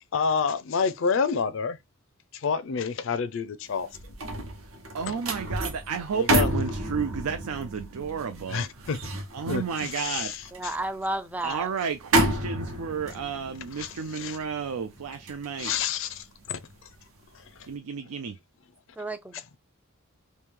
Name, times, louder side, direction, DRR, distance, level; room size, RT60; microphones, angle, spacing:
voice 1, 0.1-1.8 2.4-3.9 5.1-5.2 6.1-6.5 8.5-9.0 9.5-10.4 13.8-14.4 15.6-16.2, left 5 dB, 60° left, 0.4 m, -28 dB
sound 1, 3.7-17.0 17.4-17.7, right 1 dB, 70° right, 1.0 m, -31 dB
voice 2, 4.9-9.0 9.3-10.3 11.4-15.9 17.7-18.4, right 6 dB, 85° right, 0.4 m, -32 dB
voice 3, 10.5-11.7 19.0-19.4, right 1 dB, 5° right, 0.3 m, -32 dB
3.0 x 2.7 x 3.5 m
head